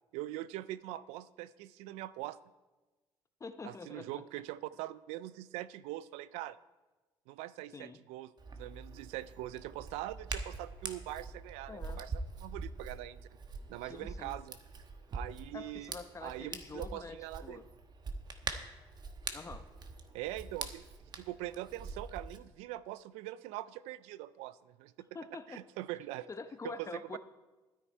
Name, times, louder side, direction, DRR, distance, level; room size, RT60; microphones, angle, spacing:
voice 1, 0.1-2.4 3.6-6.6 7.3-12.1 12.4-13.2 13.7-14.6 15.1-15.9 16.2-17.6 20.1-20.8 21.1-25.1 25.5-26.3 26.6-27.2, right 15 dB, 85° right, 17 dB, 0.4 m, -42 dB
voice 2, 3.4-4.1 7.7-8.0 11.7-12.0 13.8-14.4 15.5-17.6 19.3-19.6 25.1-25.6 26.3-27.2, left 4 dB, 30° left, 9 dB, 0.8 m, -46 dB
Hands, 8.4-22.4, right 4 dB, 40° right, 1.2 m, -44 dB
12.5 x 10.0 x 4.5 m, 1.2 s
supercardioid pair, 75°, 11 cm